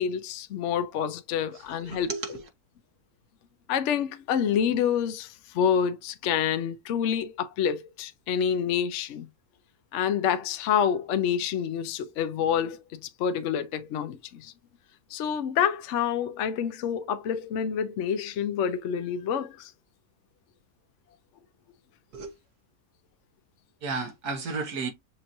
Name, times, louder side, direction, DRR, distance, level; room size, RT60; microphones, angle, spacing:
voice 1, 0.0-2.1 3.7-9.3 9.9-14.5 15.1-19.7, left 8 dB, 60° left, 0.8 m, -27 dB
voice 2, 1.5-2.5 22.1-22.4 23.8-24.9, right 4 dB, 85° right, 1.9 m, -33 dB
6.5 x 2.9 x 2.6 m
omnidirectional pair, 1.6 m